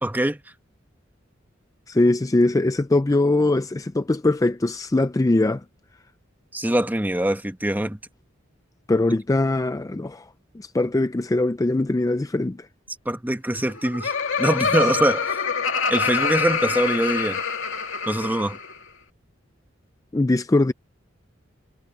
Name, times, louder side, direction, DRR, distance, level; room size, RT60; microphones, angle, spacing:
voice 1, 0.0-0.4 6.5-8.0 13.0-14.1 14.4-15.3 15.9-17.4 18.1-18.6, right 1 dB, 10° right, 1.0 m, -23 dB
voice 2, 1.9-5.6 8.9-10.3 10.5-12.7 20.1-20.7, left 2 dB, 15° left, 0.4 m, -21 dB
Laughter, 13.5-18.8, left 5 dB, 70° left, 2.4 m, -25 dB
head